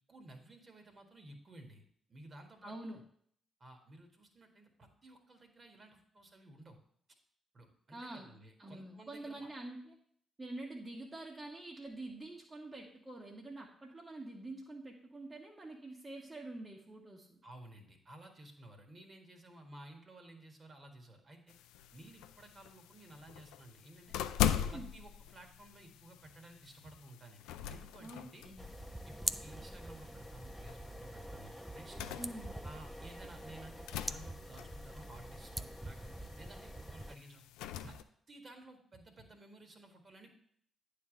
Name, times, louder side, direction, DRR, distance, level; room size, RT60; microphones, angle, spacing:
voice 1, 0.1-3.0 3.6-6.8 7.5-9.5 17.4-21.5 21.9-24.2 24.7-28.5 29.0-32.2 32.6-37.4 37.8-38.0 38.3-40.3, right 1 dB, 40° right, 4 dB, 1.6 m, -55 dB
voice 2, 2.6-3.0 7.9-8.3 8.6-9.9 10.4-17.4 24.4-24.9 28.0-28.7 32.2-32.6, right 2 dB, 25° right, -2 dB, 1.2 m, -46 dB
sound 1, 21.5-38.0, left 10 dB, 75° left, 0.3 m, -42 dB
sound 2, 28.6-37.2, right 1 dB, 5° right, 0.4 m, -44 dB
9.3 x 3.4 x 6.3 m, 0.63 s
hypercardioid pair, 40°, 0 cm